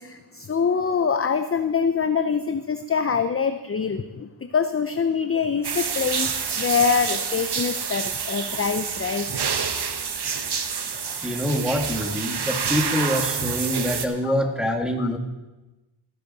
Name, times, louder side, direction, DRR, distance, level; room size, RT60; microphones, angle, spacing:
voice 1, 0.0-9.3 14.2-14.3 15.0-15.1, left 6 dB, 30° left, 9 dB, 0.5 m, -24 dB
sound 1, 5.6-14.1, right 6 dB, 50° right, 1.0 m, -28 dB
voice 2, 11.1-15.2, equal, ahead, 3 dB, 1.6 m, -25 dB
14.0 x 10.0 x 4.0 m, 1.1 s
cardioid pair, 65°, 50 cm